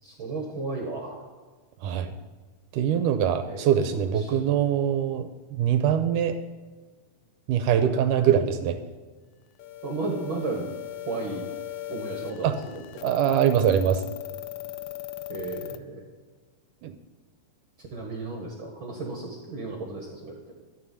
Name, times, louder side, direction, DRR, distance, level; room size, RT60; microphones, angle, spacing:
voice 1, 0.0-1.3 3.4-4.4 8.3-8.5 9.8-10.7 11.0-11.5 11.9-12.8 15.3-16.0 17.8-20.4, right 3 dB, 45° right, 1 dB, 1.9 m, -34 dB
voice 2, 1.8-2.2 2.7-6.4 7.5-8.8 12.4-12.6 13.0-14.0 16.8-17.0, right 9 dB, 80° right, 9 dB, 2.2 m, -23 dB
sound 1, 9.6-15.8, left 15 dB, 85° left, 2.3 m, -38 dB
14.0 x 9.4 x 5.6 m, 1.4 s
omnidirectional pair, 3.9 m